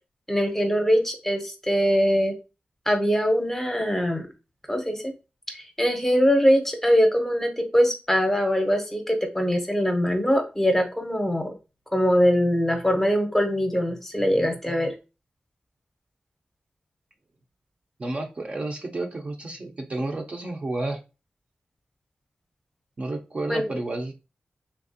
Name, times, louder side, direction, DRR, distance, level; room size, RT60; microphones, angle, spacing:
voice 1, 0.3-2.3 2.9-4.3 4.7-5.1 5.5-11.5 11.9-14.9 23.5-23.7, equal, 10° left, 4 dB, 0.7 m, -22 dB
voice 2, 18.0-21.0 23.0-24.1, right 2 dB, 40° right, 2 dB, 0.5 m, -31 dB
3.5 x 2.9 x 2.7 m, 0.30 s
wide cardioid pair, 130°, 3 cm